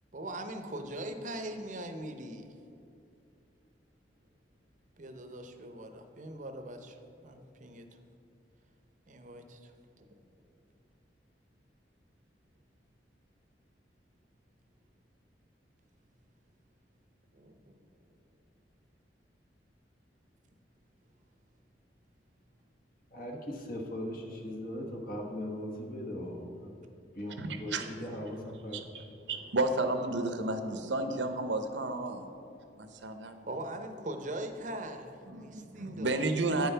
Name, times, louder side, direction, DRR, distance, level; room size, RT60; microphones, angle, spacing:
voice 1, 0.1-2.5 5.0-7.9 9.1-9.7 10.0-10.1 17.3-17.8 28.1-28.2 33.5-36.3, right 1 dB, 45° right, 7 dB, 0.7 m, -41 dB
voice 2, 23.1-26.7 27.1-29.0, left 1 dB, 50° left, 1 dB, 1.3 m, -39 dB
voice 3, 27.4-27.9 28.7-32.3 32.8-33.4 35.3-36.7, right 2 dB, 90° right, 7 dB, 0.8 m, -32 dB
9.0 x 5.5 x 5.6 m, 2.6 s
head